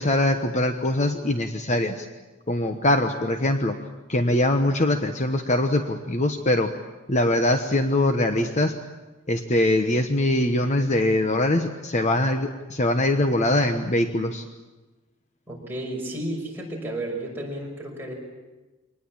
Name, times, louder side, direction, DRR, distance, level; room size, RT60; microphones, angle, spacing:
voice 1, 0.0-2.0 2.5-3.8 4.1-6.7 7.1-8.8 9.3-14.4, left 1 dB, 35° left, 7 dB, 1.1 m, -22 dB
voice 2, 15.5-18.1, right 1 dB, 10° right, -2 dB, 6.1 m, -32 dB
24.5 x 19.5 x 8.8 m, 1.2 s
head